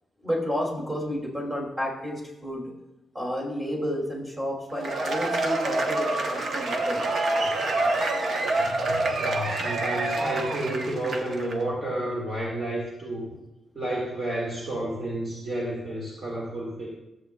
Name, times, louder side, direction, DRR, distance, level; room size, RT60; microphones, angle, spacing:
voice 1, 0.2-2.6 3.1-7.0, equal, 15° right, -3 dB, 2.5 m, -31 dB
Cheering / Applause / Crowd, 4.7-11.5, right 2 dB, 55° right, 0.9 m, -27 dB
voice 2, 8.6-13.4 13.7-16.9, right 1 dB, 35° right, -4 dB, 1.8 m, -31 dB
13.5 x 7.9 x 2.3 m, 0.94 s
wide cardioid pair, 165°, 0 cm